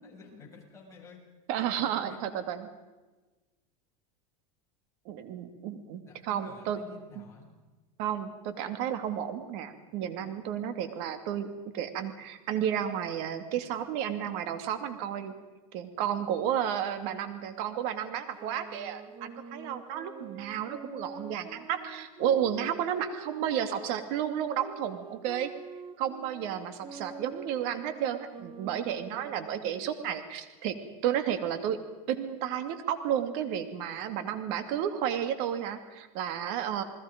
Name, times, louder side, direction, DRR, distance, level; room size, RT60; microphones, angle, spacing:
voice 1, 0.0-1.2 1.6-2.4 6.1-7.5, left 4 dB, 15° left, -3 dB, 7.7 m, -51 dB
voice 2, 1.5-2.7 5.1-6.8 7.2-7.3 8.0-15.3 15.7-25.5 26.0-30.7 31.0-31.8 32.1-36.8, right 9 dB, 60° right, 9 dB, 2.6 m, -32 dB
sound 1, 18.3-23.9 24.6-30.0, right 5 dB, 30° right, 2.2 m, -46 dB
29.5 x 20.5 x 5.3 m, 1.2 s
supercardioid pair, 130°, 18 cm